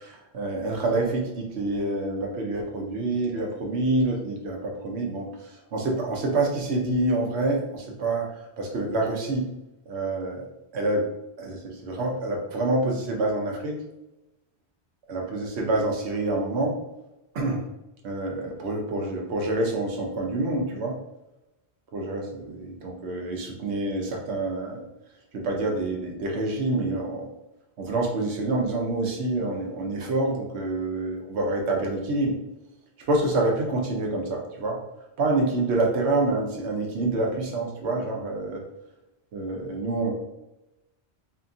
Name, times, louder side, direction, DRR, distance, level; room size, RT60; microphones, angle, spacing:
voice 1, 0.0-8.4 8.7-9.5 9.9-10.5 10.7-11.1 11.4-13.8 15.1-16.8 17.3-17.6 18.0-21.0 21.9-24.8 25.3-27.3 27.8-32.4 33.1-34.8 35.2-38.6 39.3-40.1, right 2 dB, 85° right, 0 dB, 0.9 m, -27 dB
2.7 x 2.5 x 2.5 m, 0.94 s
omnidirectional pair, 1.1 m